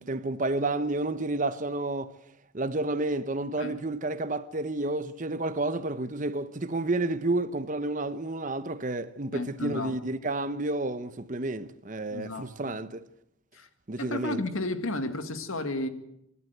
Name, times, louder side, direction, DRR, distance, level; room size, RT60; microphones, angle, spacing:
voice 1, 0.0-2.2 2.5-13.0 13.9-14.4, right 2 dB, 35° right, 0.9 m, -30 dB
voice 2, 9.3-9.9 12.1-12.8 13.5-13.7 14.0-15.9, left 2 dB, 80° left, 2.1 m, -33 dB
26.0 x 12.5 x 9.2 m
head